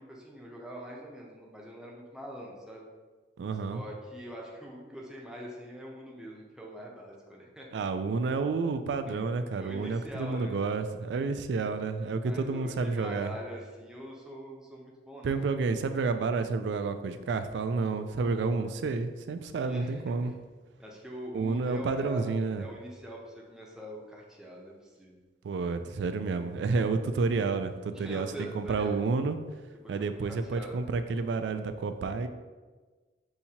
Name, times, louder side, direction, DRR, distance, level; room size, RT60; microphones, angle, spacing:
voice 1, 0.0-2.9 3.7-7.8 9.1-9.3 9.6-10.5 12.2-15.4 19.6-20.3 20.8-25.2 27.9-29.0 29.8-30.8, equal, 5° right, -3 dB, 0.6 m, -43 dB
voice 2, 3.4-3.8 7.7-13.3 15.2-20.3 21.3-22.6 25.4-29.4 29.9-32.3, right 4 dB, 75° right, 9 dB, 0.3 m, -30 dB
5.7 x 2.8 x 2.8 m, 1.3 s
head